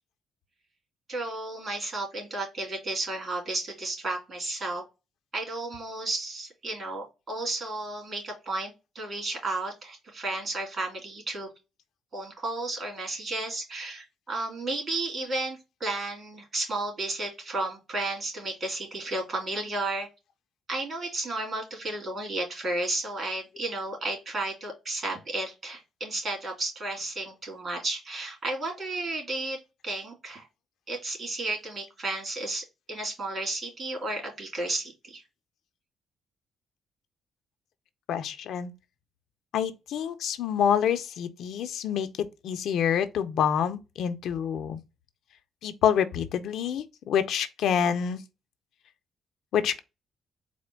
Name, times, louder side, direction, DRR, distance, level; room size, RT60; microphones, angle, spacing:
voice 1, 1.1-4.8 5.3-11.5 12.1-20.1 20.7-30.5 30.9-35.2, right 2 dB, 45° right, 2.6 m, -33 dB
voice 2, 38.1-38.7 39.5-44.8 45.6-48.2 49.5-49.8, left 8 dB, 75° left, 0.5 m, -27 dB
4.2 x 2.1 x 4.4 m
cardioid pair, 90°, 0 cm